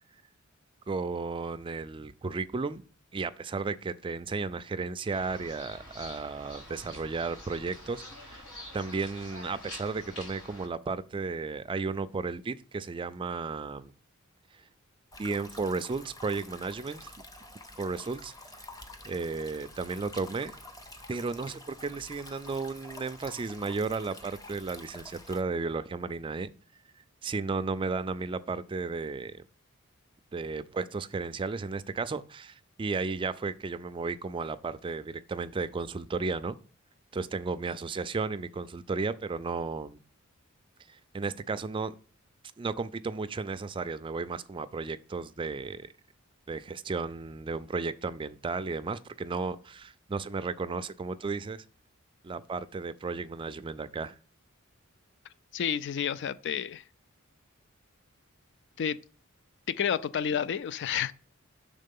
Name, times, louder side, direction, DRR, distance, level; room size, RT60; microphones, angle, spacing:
voice 1, 0.9-2.8 3.1-8.4 8.7-13.9 15.2-17.1 17.8-18.3 19.0-20.6 21.1-26.5 27.2-29.4 30.3-36.6 37.1-40.0 40.9-41.9 42.6-45.9 46.5-51.6 52.2-54.1, right 4 dB, 25° right, 0.3 m, -34 dB
sound 1, 5.1-10.7, left 1 dB, 75° left, 3.8 m, -46 dB
sound 2, 15.1-25.4, left 1 dB, 15° left, 0.7 m, -48 dB
voice 2, 55.5-56.8 58.8-59.0 59.7-61.1, left 8 dB, 55° left, 0.4 m, -30 dB
6.6 x 3.7 x 5.3 m
head